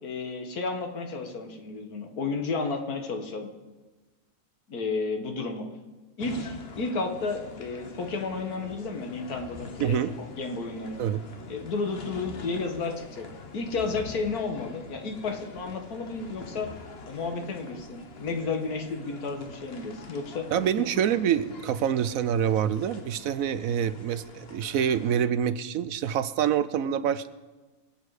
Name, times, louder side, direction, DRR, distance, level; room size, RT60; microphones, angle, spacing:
voice 1, 0.0-3.5 4.7-5.7 6.2-10.0 10.4-11.0 11.5-13.3 13.5-16.7 17.1-20.5, left 4 dB, 80° left, 4 dB, 2.0 m, -32 dB
sound 1, 6.2-25.2, left 4 dB, 45° left, 1.3 m, -45 dB
voice 2, 9.8-10.1 11.0-11.2 20.5-27.3, right 9 dB, 70° right, 14 dB, 1.0 m, -26 dB
24.5 x 8.3 x 4.9 m, 1.2 s
omnidirectional pair, 1.6 m